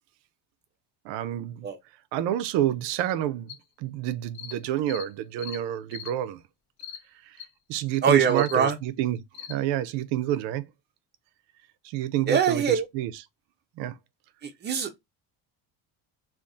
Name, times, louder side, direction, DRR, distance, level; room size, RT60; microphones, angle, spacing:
voice 1, 1.0-1.7 2.1-6.4 7.2-7.4 7.7-10.6 11.8-13.2 13.8-14.0, right 12 dB, 75° right, 0.6 m, -29 dB
sound 1, 3.5-3.6 4.3-4.6 4.9-5.1 5.4-5.6 5.9-6.1 6.8-7.0 7.4-7.5 7.9-8.0 8.3-8.6 9.3-9.6, left 9 dB, 80° left, 0.9 m, -40 dB
voice 2, 8.0-8.7 12.3-12.9 14.4-15.0, right 6 dB, 25° right, 0.6 m, -23 dB
2.6 x 2.4 x 3.5 m
cardioid pair, 155°, 43 cm